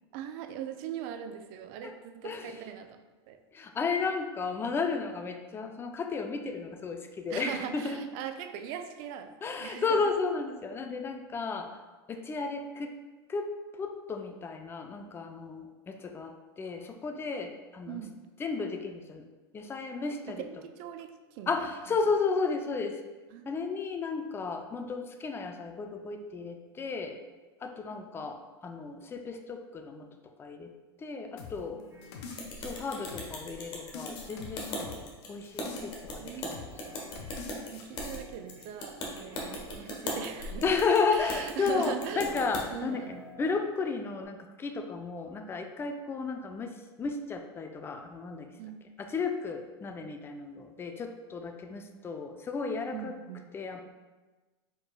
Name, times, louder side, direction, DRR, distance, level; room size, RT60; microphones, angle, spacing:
voice 1, 0.1-3.4 7.3-10.0 17.9-18.1 20.3-22.0 23.3-23.6 27.9-28.3 31.7-31.8 36.2-36.5 37.7-40.7 41.1-43.3 48.6-48.8 52.9-53.5, right 9 dB, 55° right, 7 dB, 0.5 m, -41 dB
voice 2, 3.5-8.0 9.4-11.8 12.1-12.9 13.3-18.0 18.4-19.3 19.5-20.4 21.5-23.0 23.5-27.2 27.6-30.1 30.4-30.7 31.0-31.8 32.6-36.6 40.6-48.5 49.0-53.1 53.5-53.8, left 4 dB, 15° left, 5 dB, 0.4 m, -33 dB
sound 1, 31.4-33.5 33.9-36.1 36.5-36.8 37.2-38.2, left 5 dB, 65° left, 0.8 m, -44 dB
sound 2, 31.9-32.7 32.9-35.2 35.8-36.4 36.7-37.7 37.9-38.8 39.2-40.2 40.8-42.6 42.9-43.9 44.2-44.3, right 1 dB, 20° right, 1.2 m, -53 dB
sound 3, 32.4-42.6, left 1 dB, 35° left, 1.1 m, -39 dB
4.7 x 4.4 x 2.3 m, 1.2 s
hypercardioid pair, 110°, 14 cm